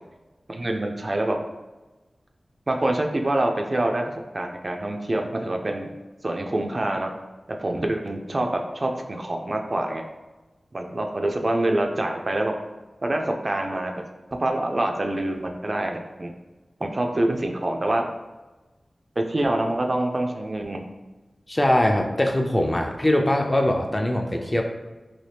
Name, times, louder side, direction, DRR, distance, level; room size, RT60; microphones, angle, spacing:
voice 1, 0.5-1.4 2.7-5.9 6.2-7.1 7.5-10.0 10.7-12.6 13.0-14.0 14.3-16.3 16.8-18.1 19.2-20.8, right 1 dB, 45° right, 3 dB, 0.3 m, -26 dB
voice 2, 21.5-24.6, left 1 dB, 25° left, 2 dB, 0.4 m, -22 dB
2.8 x 2.7 x 3.3 m, 1.2 s
wide cardioid pair, 65°, 0 cm